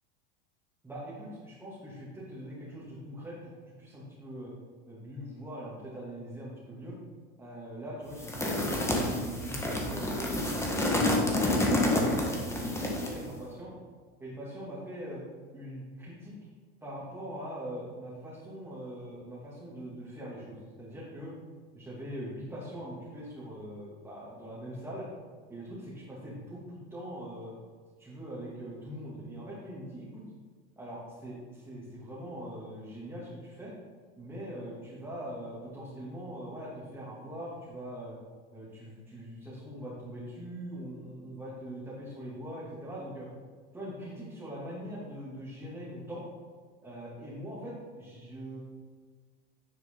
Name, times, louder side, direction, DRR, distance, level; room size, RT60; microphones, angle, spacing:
voice 1, 0.8-4.5 4.9-7.0 7.4-13.7 14.2-15.2 15.5-16.3 16.8-21.3 21.7-25.1 25.5-27.5 28.0-30.2 30.8-33.7 34.2-38.1 38.5-43.3 43.7-46.2 46.8-48.6, equal, 10° right, -8 dB, 2.3 m, -42 dB
sound 1, 8.2-13.2, left 1 dB, 10° left, 1.3 m, -28 dB
10.0 x 4.7 x 3.8 m, 1.5 s
supercardioid pair, 115°, 29 cm